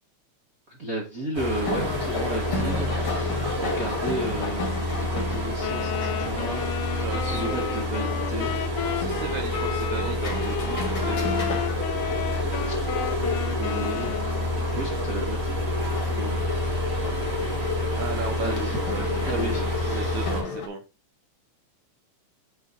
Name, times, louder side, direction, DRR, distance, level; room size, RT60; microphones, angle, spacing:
voice 1, 0.7-3.3 3.6-6.7 6.9-7.0 7.3-8.6 12.7-12.8 13.5-14.1 14.7-15.4 16.1-16.5 18.4-18.8 19.2-20.3, right 1 dB, 50° right, -2 dB, 1.0 m, -33 dB
sound 1, 1.3-20.4, left 1 dB, 35° right, 3.0 m, -28 dB
sound 2, 1.6-20.7, left 3 dB, 50° left, 2.0 m, -36 dB
Wind instrument woodwind instrument, 5.6-14.6, left 12 dB, 85° left, 2.1 m, -33 dB
voice 2, 7.0-8.0 8.9-11.6 18.0-20.8, right 5 dB, 75° right, 5 dB, 2.1 m, -35 dB
6.1 x 4.5 x 3.8 m, 0.27 s
omnidirectional pair, 3.6 m